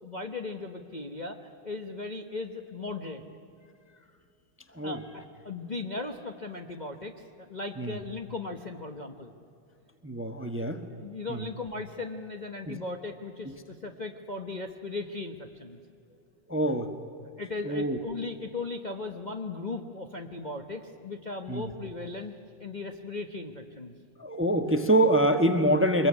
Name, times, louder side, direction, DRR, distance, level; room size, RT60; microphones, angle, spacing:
voice 1, 0.0-3.2 4.8-9.3 10.3-10.6 11.0-15.8 17.4-22.3 22.6-24.0, left 3 dB, 30° left, 3 dB, 1.1 m, -37 dB
voice 2, 10.0-10.8 11.3-11.5 12.7-12.8 13.5-13.6 16.5-16.9 17.6-18.0 21.5-21.7 24.2-26.1, right 1 dB, 10° right, 7 dB, 1.1 m, -25 dB
24.5 x 21.0 x 9.7 m, 2.5 s
omnidirectional pair, 2.0 m